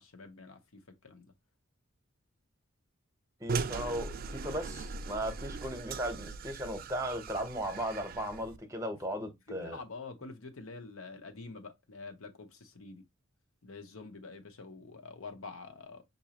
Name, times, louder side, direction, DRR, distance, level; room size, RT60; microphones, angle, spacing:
voice 1, 0.0-1.3 9.5-13.0 13.6-16.0, left 3 dB, 70° left, 0.9 m, -47 dB
voice 2, 3.4-9.8, equal, 15° right, 0.9 m, -37 dB
sound 1, 3.5-8.6, right 4 dB, 40° right, 0.3 m, -39 dB
5.9 x 2.7 x 2.9 m
head